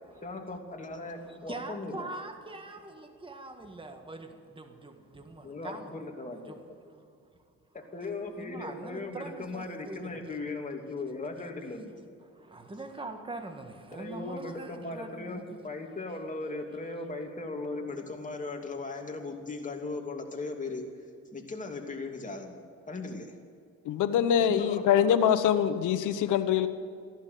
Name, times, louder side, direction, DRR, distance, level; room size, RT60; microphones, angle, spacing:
voice 1, 0.2-2.1 5.4-6.8 7.7-12.0 13.9-20.9 21.3-22.6 22.9-23.3 24.3-25.2, left 3 dB, 25° left, 2.8 m, -38 dB
voice 2, 1.0-6.0 6.4-7.1 8.0-8.1 8.4-10.4 12.2-15.7, right 2 dB, 15° right, 1.8 m, -43 dB
voice 3, 23.8-26.7, left 9 dB, 85° left, 1.1 m, -24 dB
15.5 x 11.5 x 8.4 m
cardioid pair, 90°, 30 cm